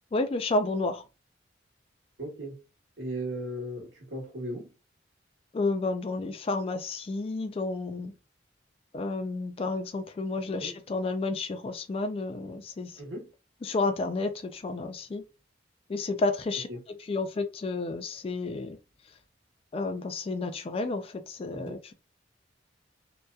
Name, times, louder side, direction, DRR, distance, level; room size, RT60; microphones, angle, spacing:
voice 1, 0.1-1.0 5.5-8.1 8.9-13.0 13.6-15.2 15.9-16.7 17.1-18.8 19.7-21.9, left 3 dB, 30° left, 0.3 m, -31 dB
voice 2, 2.2-2.6 3.0-4.7 10.6-10.7 13.0-13.3 16.7-16.8 21.5-21.8, right 1 dB, 75° right, 1.1 m, -37 dB
2.6 x 2.1 x 2.3 m
head